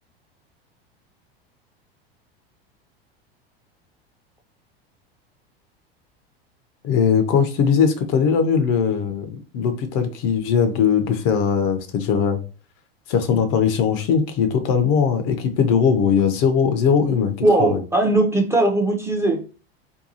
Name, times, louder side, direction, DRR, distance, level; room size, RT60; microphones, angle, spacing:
voice 1, 6.8-12.4 13.1-17.8, left 7 dB, 50° left, 0.5 m, -20 dB
voice 2, 17.4-19.4, right 2 dB, 10° right, 0.5 m, -19 dB
2.7 x 2.2 x 2.7 m
hypercardioid pair, 90°, 30 cm